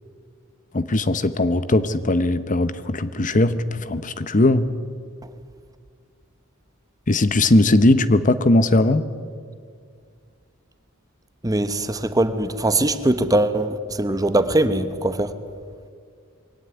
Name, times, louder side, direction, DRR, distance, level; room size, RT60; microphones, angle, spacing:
voice 1, 0.7-4.7 7.1-9.0, left 2 dB, 40° left, 13 dB, 0.8 m, -19 dB
voice 2, 11.4-15.3, right 1 dB, 20° right, 11 dB, 1.0 m, -21 dB
22.5 x 17.5 x 9.5 m, 2.1 s
head